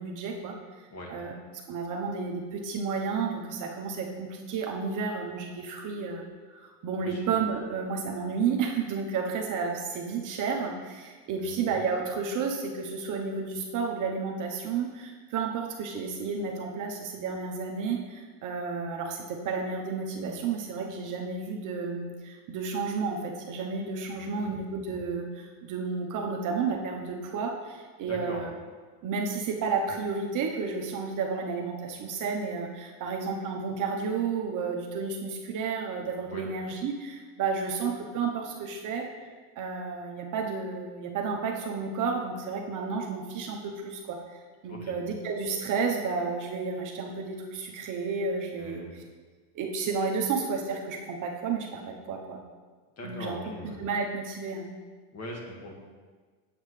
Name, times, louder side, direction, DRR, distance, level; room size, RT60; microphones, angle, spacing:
voice 1, 0.0-0.8 1.1-28.5 29.0-39.1 39.6-49.0 49.5-52.4 53.0-53.4 53.6-54.7, right 5 dB, 40° right, 1 dB, 1.0 m, -32 dB
voice 2, 24.1-24.5 28.1-28.4 36.2-36.4 44.7-44.9 48.6-49.0 53.0-53.8 55.1-55.7, left 1 dB, 35° left, -1 dB, 1.8 m, -41 dB
7.9 x 7.7 x 3.3 m, 1.4 s
supercardioid pair, 115°, 46 cm